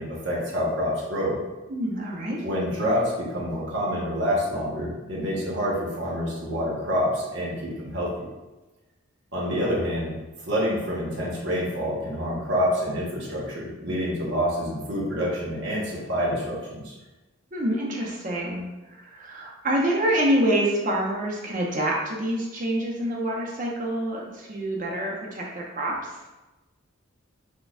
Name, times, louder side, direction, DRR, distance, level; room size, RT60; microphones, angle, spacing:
voice 1, 0.0-1.4 2.4-8.3 9.3-10.1 10.5-17.0, equal, 60° right, -5 dB, 1.0 m, -27 dB
voice 2, 1.7-2.4 17.5-18.6 18.9-25.9, right 1 dB, 40° right, -2 dB, 0.6 m, -26 dB
6.2 x 2.3 x 2.3 m, 1.1 s
head